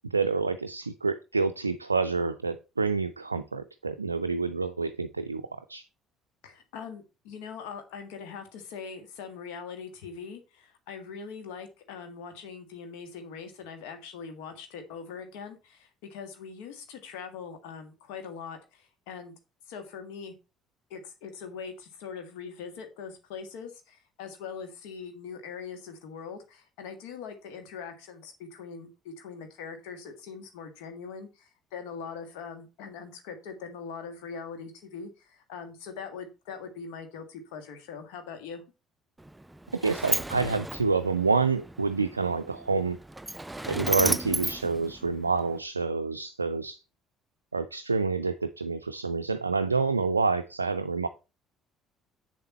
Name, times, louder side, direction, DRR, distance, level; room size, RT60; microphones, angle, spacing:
voice 1, 0.1-5.8 39.8-43.0 43.7-46.8 47.5-51.1, right 4 dB, 85° right, 8 dB, 0.3 m, -28 dB
voice 2, 6.4-19.3 19.7-20.3 20.9-38.6, left 6 dB, 65° left, 6 dB, 1.8 m, -42 dB
Sliding door, 39.2-45.6, right 1 dB, 10° right, 0.4 m, -34 dB
7.5 x 7.1 x 4.3 m, 0.30 s
figure-of-eight pair, 50°, 0 cm